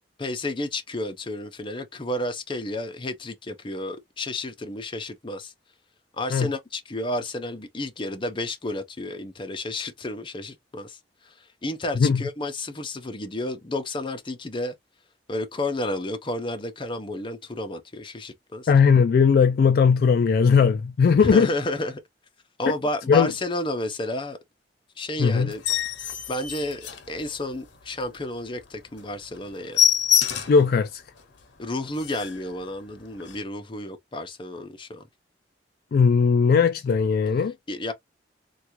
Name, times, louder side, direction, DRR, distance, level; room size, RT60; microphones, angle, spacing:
voice 1, 0.2-5.5 6.2-14.8 15.3-18.7 21.2-22.0 22.6-24.4 25.0-25.6 26.3-29.8 31.6-35.0 37.7-37.9, left 1 dB, 30° left, 0.6 m, -31 dB
voice 2, 18.7-21.5 23.1-23.3 25.2-25.5 30.5-31.0 35.9-37.5, left 5 dB, 55° left, 0.3 m, -18 dB
sound 1, 25.5-27.6 28.1-28.2 28.6-28.7 29.0-29.1 29.4-30.7 31.2-31.3 31.6-31.7 31.9-32.5 33.2-33.4, left 10 dB, 85° left, 0.8 m, -25 dB
3.3 x 2.4 x 3.0 m
head